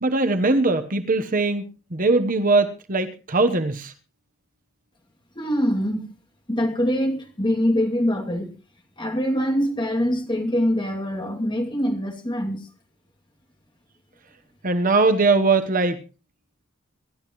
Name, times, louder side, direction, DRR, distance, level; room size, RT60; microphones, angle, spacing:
voice 1, 0.0-3.9 14.6-16.0, right 3 dB, 40° right, 1.0 m, -21 dB
voice 2, 5.4-6.1 6.5-8.5 9.0-12.7, equal, 20° left, 2.6 m, -24 dB
25.0 x 12.0 x 3.1 m
head